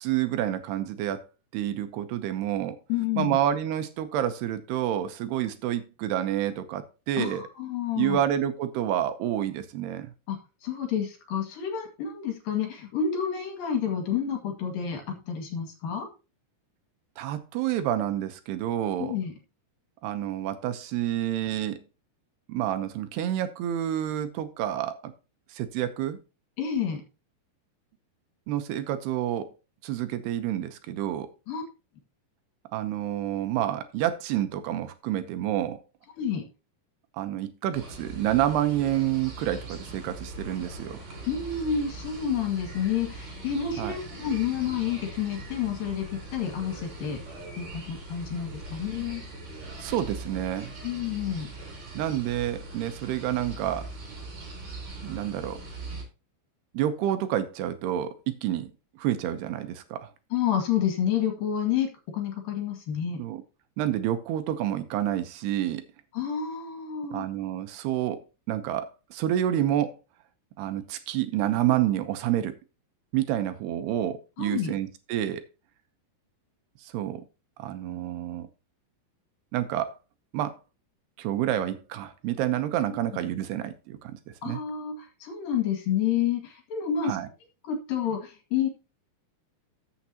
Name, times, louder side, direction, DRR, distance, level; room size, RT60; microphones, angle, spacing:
voice 1, 0.0-1.3 1.5-2.8 3.2-7.4 8.0-10.1 17.2-19.2 20.0-21.8 22.5-25.1 25.5-26.2 28.5-29.5 29.8-31.3 32.7-35.8 37.1-41.0 43.8-44.0 49.8-50.7 51.9-53.9 55.0-55.6 56.7-60.1 63.2-63.4 63.8-65.8 67.1-70.0 70.6-72.6 73.1-75.4 76.8-77.2 77.6-78.5 79.5-80.0 80.3-80.6 81.2-84.2 84.5-84.6 87.0-87.3, right 12 dB, 80° right, 2.9 m, -29 dB
voice 2, 2.9-3.4 7.2-8.2 10.3-16.1 19.0-19.3 26.6-27.0 31.5-31.6 36.2-36.5 41.3-47.2 47.6-49.2 50.8-51.5 60.3-63.2 66.1-67.3 74.4-74.8 82.9-83.2 84.4-87.2 87.7-88.7, left 8 dB, 60° left, 3.5 m, -29 dB
sound 1, 37.7-56.0, right 2 dB, 45° right, 4.3 m, -41 dB
14.0 x 7.2 x 2.9 m
omnidirectional pair, 4.8 m